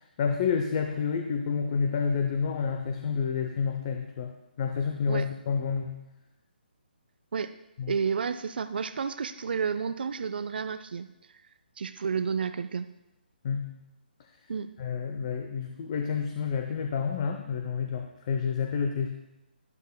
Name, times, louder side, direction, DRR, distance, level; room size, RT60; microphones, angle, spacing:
voice 1, 0.2-4.3 4.6-5.9 7.8-7.9 13.4-13.7 14.8-19.1, left 6 dB, 35° left, 5 dB, 0.6 m, -29 dB
voice 2, 7.9-11.1 11.8-12.9 14.5-14.7, right 6 dB, 65° right, 11 dB, 0.4 m, -31 dB
12.0 x 10.5 x 2.2 m, 0.95 s
hypercardioid pair, 155°, 6 cm